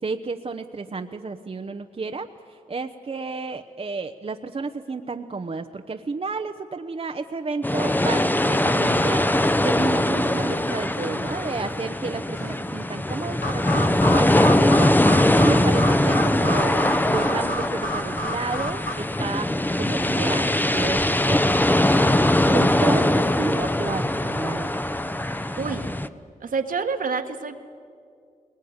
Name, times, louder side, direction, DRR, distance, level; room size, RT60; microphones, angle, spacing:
voice 1, 0.0-22.1 22.5-24.8 25.1-25.2, right 4 dB, 40° right, 7 dB, 0.9 m, -32 dB
sound 1, 7.6-26.1, left 1 dB, 10° left, 0.9 m, -21 dB
sound 2, 10.0-21.4, left 2 dB, 85° left, 6.7 m, -48 dB
sound 3, 13.4-18.9, equal, 65° left, 2.3 m, -31 dB
voice 2, 25.6-25.9 26.4-27.6, right 5 dB, 70° right, 6 dB, 1.6 m, -28 dB
20.5 x 19.5 x 9.6 m, 2.3 s
cardioid pair, 55°, 15 cm